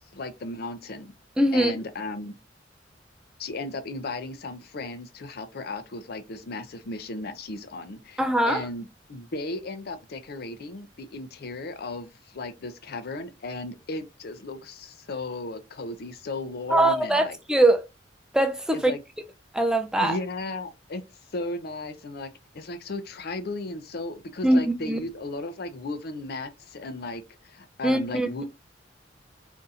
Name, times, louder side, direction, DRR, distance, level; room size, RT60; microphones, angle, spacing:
voice 1, 0.1-1.1 1.5-2.4 3.4-17.4 18.7-19.0 20.0-21.0 21.3-28.5, left 2 dB, 55° left, 0.5 m, -35 dB
voice 2, 1.4-1.7 8.2-8.6 16.7-17.9 18.3-18.9 19.5-20.2 24.4-25.0 27.8-28.3, right 1 dB, 5° right, 0.3 m, -22 dB
2.7 x 2.4 x 4.0 m
head